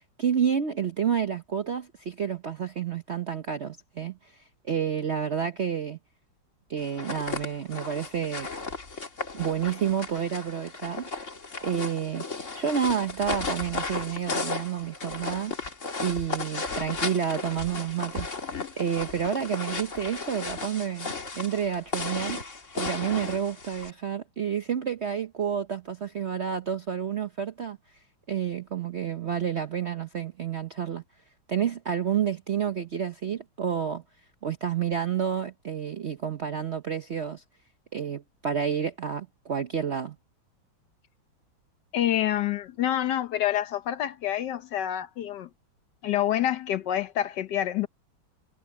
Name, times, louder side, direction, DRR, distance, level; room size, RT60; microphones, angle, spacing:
voice 1, 0.0-6.0 6.7-8.5 9.3-11.1 11.6-12.3 12.5-15.5 16.0-18.3 18.8-22.4 22.7-27.8 28.3-31.0 31.5-34.0 34.4-37.4 37.9-40.2, right 8 dB, 55° right, 0.7 m, -29 dB
sound 1, 6.8-23.9, left 4 dB, 40° left, 2.5 m, -35 dB
voice 2, 41.9-45.5 46.0-47.9, left 11 dB, 65° left, 1.3 m, -27 dB
omnidirectional pair, 2.1 m